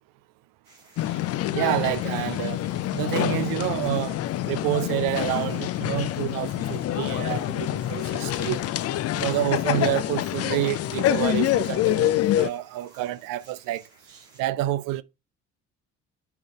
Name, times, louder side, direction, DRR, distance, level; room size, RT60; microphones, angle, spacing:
sound 1, 0.6-14.4, right 3 dB, 80° right, 2.0 m, -55 dB
sound 2, 1.0-12.5, left 13 dB, 40° left, 0.5 m, -26 dB
voice 1, 1.5-2.7 2.9-4.2 4.5-8.6 9.1-13.8 14.4-15.0, right 16 dB, 55° right, 0.6 m, -28 dB
8.9 x 4.0 x 4.4 m
figure-of-eight pair, 45°, 40 cm